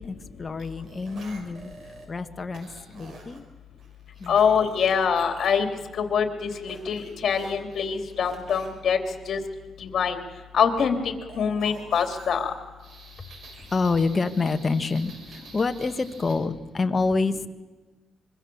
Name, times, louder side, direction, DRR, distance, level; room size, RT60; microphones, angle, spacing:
voice 1, 0.0-1.7 2.1-3.4 4.2-4.4 13.2-13.3 13.7-17.5, left 4 dB, 30° left, 8 dB, 1.4 m, -27 dB
sound 1, 0.6-2.0 2.5-3.4 3.8-5.5 6.5-8.7 11.3-16.3, right 3 dB, 65° right, 6.2 m, -47 dB
voice 2, 4.3-5.7 6.0-9.0 9.3-9.4 9.8-10.2 10.5-12.5, left 7 dB, 60° left, 6 dB, 3.3 m, -24 dB
25.0 x 23.5 x 7.2 m, 1.2 s
cardioid pair, 105°, 0 cm